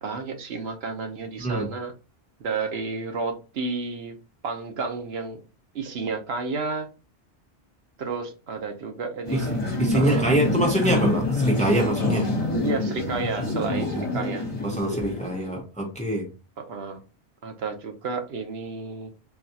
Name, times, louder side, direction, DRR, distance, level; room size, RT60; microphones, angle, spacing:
voice 1, 0.0-1.9 2.4-4.2 4.4-5.4 5.7-6.9 8.0-9.6 9.9-10.4 12.6-14.5 16.6-17.0 17.4-19.1, right 4 dB, 70° right, 1.0 m, -31 dB
voice 2, 1.4-1.7 9.3-9.4 9.8-12.3 13.7-13.9 14.6-16.3, right 1 dB, 10° left, 0.7 m, -24 dB
sound 1, 9.2-15.6, left 2 dB, 35° left, 1.1 m, -26 dB
3.9 x 2.3 x 2.7 m
omnidirectional pair, 1.1 m